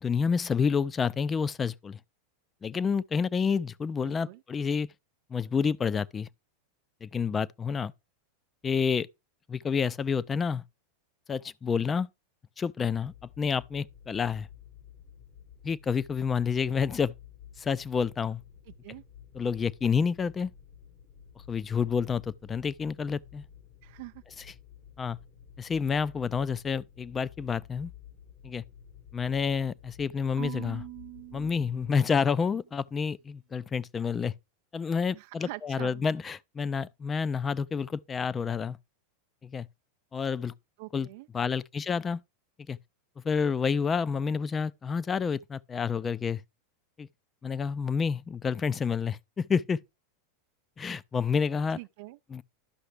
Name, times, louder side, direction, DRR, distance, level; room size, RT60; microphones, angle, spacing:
voice 1, 0.0-2.0 2.6-4.9 5.3-6.3 7.0-7.9 8.6-9.1 9.5-10.6 11.3-12.1 12.6-14.5 15.6-17.1 17.6-18.4 19.3-20.5 21.5-23.4 25.0-25.2 25.6-27.9 28.4-28.6 29.1-30.8 31.3-34.3 34.7-38.8 39.4-39.7 40.1-40.5 40.9-41.1 41.3-42.2 42.7-42.8 43.2-46.4 47.0-47.1 47.4-49.8 50.8-51.8 52.3-52.4, left 6 dB, 25° left, 0.4 m, -29 dB
voice 2, 4.0-4.4 18.7-19.0 23.8-24.2 35.1-36.0 40.8-41.3 51.8-52.2, right 21 dB, 60° right, 0.3 m, -44 dB
sound 1, 12.8-31.9, left 8 dB, 60° left, 1.5 m, -52 dB
Marimba xylophone / Wood, 30.4-32.6, right 18 dB, 45° right, 0.9 m, -43 dB
11.5 x 5.7 x 3.3 m
hypercardioid pair, 100°, 0 cm